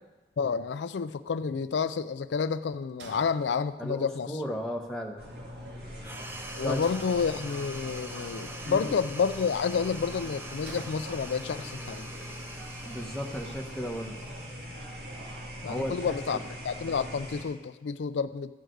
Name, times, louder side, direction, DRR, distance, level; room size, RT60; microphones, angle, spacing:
voice 1, 0.4-4.4 6.6-12.1 15.6-16.4 16.6-18.5, left 5 dB, 85° left, 13 dB, 0.4 m, -30 dB
sound 1, 3.0-4.1 6.8-7.8 10.7-11.8, right 2 dB, 90° right, 1.0 m, -50 dB
voice 2, 3.8-5.2 6.6-6.8 8.7-8.9 12.8-14.2 15.7-15.9 16.3-16.4, equal, 5° left, 0 dB, 1.0 m, -35 dB
sound 2, 5.2-17.4, equal, 60° right, 2.2 m, -41 dB
sound 3, 6.0-14.9, right 1 dB, 10° right, 0.7 m, -45 dB
13.5 x 4.8 x 7.8 m, 1.1 s
head